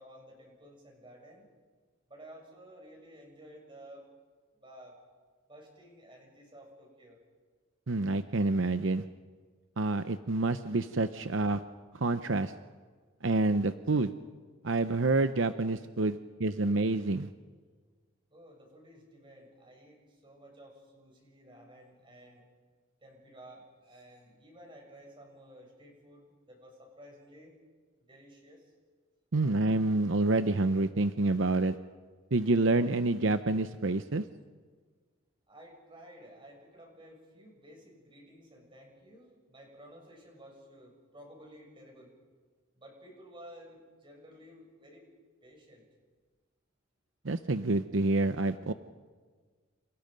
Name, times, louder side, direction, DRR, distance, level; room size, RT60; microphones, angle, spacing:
voice 1, 0.0-1.5 2.1-4.1 4.5-5.0 5.5-7.2 18.3-22.4 23.0-27.5 28.0-28.7 35.5-42.2 42.7-45.0 45.4-45.8, equal, 25° right, 1 dB, 7.0 m, -53 dB
voice 2, 7.9-9.0 9.8-11.6 11.9-12.5 13.2-14.1 14.6-17.3 29.3-31.8 32.3-34.2 47.2-48.7, right 2 dB, 70° right, 10 dB, 0.8 m, -28 dB
29.5 x 28.0 x 5.3 m, 1.5 s
head